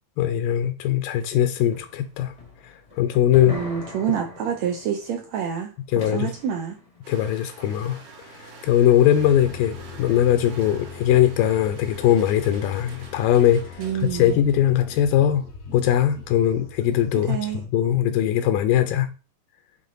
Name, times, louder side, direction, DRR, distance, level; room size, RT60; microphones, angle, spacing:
voice 1, 0.2-2.3 2.6-3.6 5.9-6.3 7.1-13.8 14.1-15.5 15.7-17.4 17.7-19.1, left 11 dB, 85° left, 2.3 m, -20 dB
sound 1, 1.7-8.7 10.6-11.6 12.2-12.5 12.9-13.0 14.0-14.1 14.5-14.6, left 2 dB, 40° left, 0.5 m, -44 dB
voice 2, 3.5-5.7 6.0-6.8 13.8-14.4 17.3-17.6, right 8 dB, 75° right, 1.6 m, -27 dB
sound 2, 7.0-14.7, right 3 dB, 55° right, 2.1 m, -46 dB
sound 3, 9.2-17.7, left 5 dB, 65° left, 0.9 m, -41 dB
8.5 x 3.6 x 3.8 m
omnidirectional pair, 3.9 m